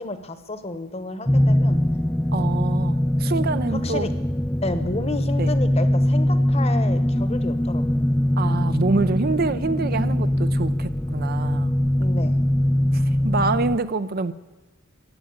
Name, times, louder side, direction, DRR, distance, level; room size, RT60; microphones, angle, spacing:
voice 1, 0.0-1.8 2.4-2.6 3.7-4.1 4.6-8.0 12.0-12.4, left 2 dB, 30° left, 10 dB, 1.1 m, -31 dB
sound 1, 1.3-13.8, left 1 dB, 10° left, 0.4 m, -22 dB
voice 2, 2.3-4.1 5.4-5.5 8.4-11.8 12.9-14.3, right 3 dB, 45° right, 12 dB, 0.6 m, -26 dB
15.0 x 9.3 x 8.8 m, 1.2 s
head